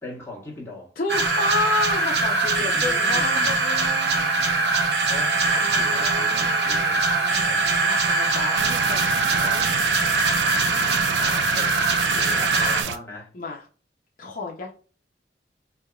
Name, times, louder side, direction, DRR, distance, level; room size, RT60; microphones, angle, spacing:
voice 1, 0.0-0.9 2.6-3.7 5.1-7.0 7.3-7.7 11.2-11.7 12.0-13.3, left 2 dB, 15° left, 1.2 m, -38 dB
voice 2, 1.0-4.6 5.6-6.8 7.1-9.8 10.7-11.3 13.3-13.6 14.2-14.7, left 2 dB, 50° left, 0.6 m, -31 dB
sound 1, 1.1-12.8, right 3 dB, 70° right, 0.7 m, -22 dB
Wind instrument woodwind instrument, 3.8-9.8, right 9 dB, 25° right, 1.4 m, -34 dB
sound 2, 8.6-13.0, right 9 dB, 85° right, 0.3 m, -30 dB
4.4 x 2.8 x 2.3 m
head